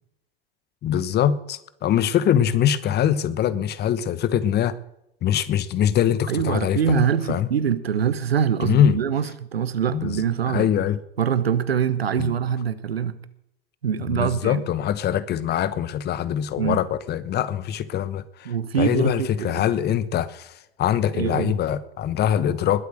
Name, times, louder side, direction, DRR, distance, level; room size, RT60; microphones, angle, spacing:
voice 1, 0.8-4.8 5.2-7.5 8.6-9.0 9.9-10.2 10.5-11.0 12.2-12.3 14.1-22.8, left 10 dB, 35° left, 1.1 m, -23 dB
voice 2, 6.3-10.8 11.2-13.2 13.8-14.6 16.6-16.8 18.4-19.6 21.1-21.5, right 8 dB, 90° right, 1.1 m, -24 dB
20.5 x 8.1 x 6.4 m
hypercardioid pair, 95°, 30 cm